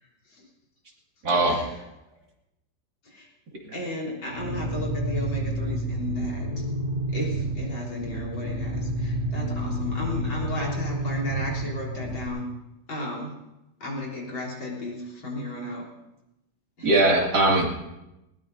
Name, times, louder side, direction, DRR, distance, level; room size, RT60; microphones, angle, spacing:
voice 1, 1.2-1.6 3.6-3.8 16.8-17.7, right 2 dB, 55° right, -1 dB, 2.9 m, -20 dB
voice 2, 3.7-6.6 7.1-12.5 12.9-13.4 13.8-15.9 16.8-16.9, left 1 dB, 85° left, -4 dB, 4.3 m, -34 dB
sound 1, 4.3-12.3, right 1 dB, 35° right, 2.7 m, -29 dB
20.0 x 19.5 x 2.7 m, 0.94 s
omnidirectional pair, 2.1 m